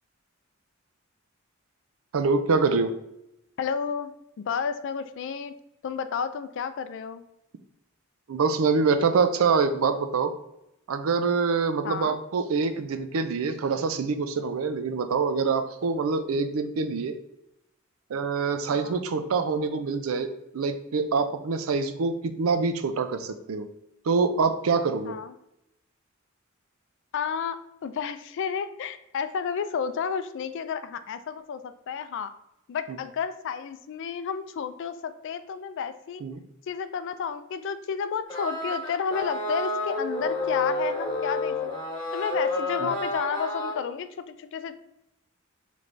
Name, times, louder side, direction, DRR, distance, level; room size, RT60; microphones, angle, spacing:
voice 1, 2.1-2.9 8.3-10.3 10.9-17.1 18.1-20.3 20.5-23.7 24.1-25.2 36.2-36.4 42.8-42.9, right 4 dB, 80° right, 9 dB, 0.4 m, -25 dB
voice 2, 3.6-5.6 5.8-7.3 11.8-12.2 18.7-19.1 25.1-25.3 27.1-32.3 32.7-36.2 36.7-41.8 42.1-44.7, left 6 dB, 60° left, 11 dB, 0.3 m, -31 dB
sound 1, 38.3-43.8, left 2 dB, 20° left, 1.3 m, -29 dB
3.9 x 3.2 x 3.2 m, 0.85 s
head